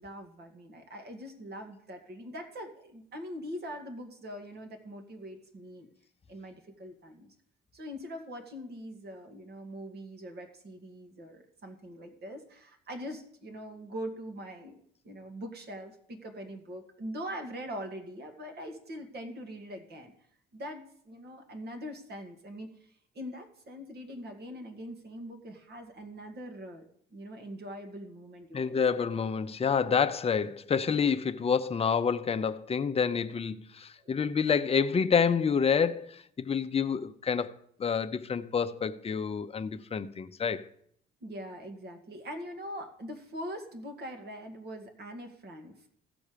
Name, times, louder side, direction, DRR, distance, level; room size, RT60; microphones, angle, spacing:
voice 1, 0.0-5.9 6.3-7.3 7.7-20.1 20.5-28.8 34.0-34.2 41.2-45.9, equal, 55° right, 2.0 m, -42 dB
voice 2, 28.5-37.5 37.8-40.7, left 6 dB, 30° left, 0.7 m, -28 dB
15.5 x 6.1 x 5.1 m
cardioid pair, 90°, 20 cm